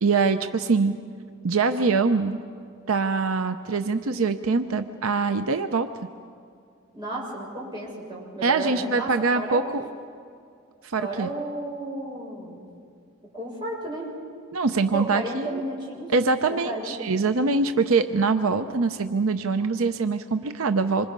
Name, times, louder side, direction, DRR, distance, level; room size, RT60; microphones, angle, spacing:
voice 1, 0.0-0.9 1.4-2.4 2.9-5.9 8.4-9.8 10.8-11.3 14.5-15.6 16.1-21.1, right 4 dB, 75° right, 8 dB, 0.7 m, -23 dB
voice 2, 6.9-9.6 11.0-12.7 13.3-14.1 14.9-16.1 16.5-16.9, right 1 dB, 20° right, -5 dB, 6.6 m, -33 dB
27.0 x 25.5 x 5.4 m, 2.3 s
head